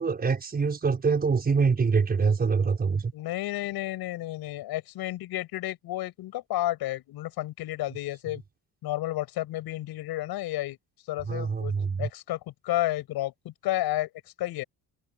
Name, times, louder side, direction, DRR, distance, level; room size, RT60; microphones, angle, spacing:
voice 1, 0.0-3.1 11.3-12.1, right 5 dB, 25° right, 6.1 m, -25 dB
voice 2, 3.1-8.4 8.8-10.8 11.1-11.7 12.0-14.1 14.4-14.6, left 15 dB, 85° left, 7.2 m, -31 dB
cardioid pair, 175°, 37 cm